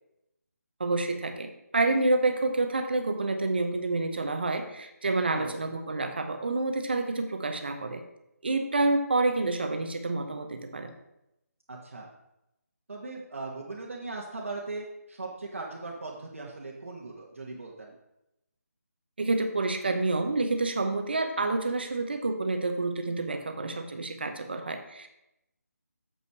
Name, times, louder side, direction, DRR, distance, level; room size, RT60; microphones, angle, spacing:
voice 1, 0.8-8.0 8.4-10.9 19.2-25.1, right 2 dB, 40° right, 6 dB, 0.9 m, -28 dB
voice 2, 5.3-5.7 11.7-12.1 12.9-17.9, right 3 dB, 55° right, -2 dB, 1.3 m, -39 dB
7.3 x 5.6 x 4.7 m, 0.86 s
figure-of-eight pair, 180°, 9 cm